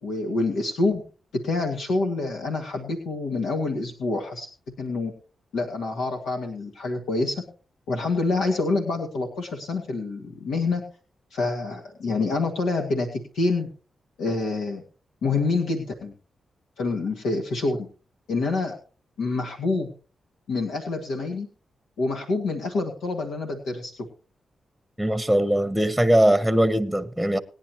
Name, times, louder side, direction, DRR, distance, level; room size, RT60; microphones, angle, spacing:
voice 1, 0.0-1.0 1.4-4.5 4.8-5.1 5.5-7.4 7.9-10.8 11.3-13.7 14.2-14.8 15.2-16.1 16.8-17.9 18.3-18.7 19.2-19.9 20.5-21.5 22.0-24.1, left 3 dB, 90° left, 2.0 m, -27 dB
voice 2, 25.0-27.4, right 1 dB, ahead, 1.0 m, -21 dB
19.5 x 10.0 x 3.1 m
cardioid pair, 55°, 0 cm